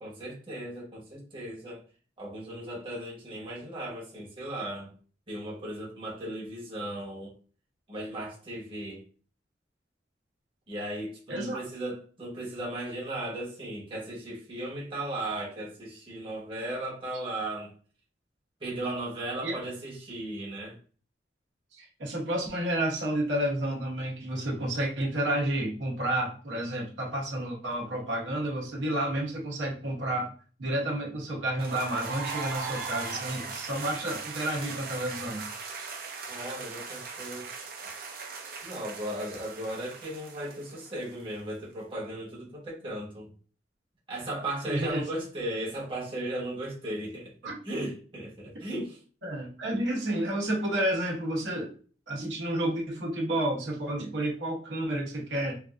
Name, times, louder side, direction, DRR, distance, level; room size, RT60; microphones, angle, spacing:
voice 1, 0.0-1.8 2.2-4.9 5.3-7.3 7.9-9.0 10.7-17.7 18.6-20.8 36.3-37.5 38.6-43.3 44.1-49.0, right 1 dB, 30° right, 0.9 m, -36 dB
voice 2, 11.3-11.6 19.4-19.5 21.8-30.3 30.6-35.5 44.7-45.1 47.4-47.5 49.2-51.7 52.1-55.6, right 1 dB, 80° right, 0.9 m, -30 dB
sound 1, 31.6-41.4, right 4 dB, 55° right, 0.5 m, -39 dB
3.2 x 2.5 x 2.4 m
head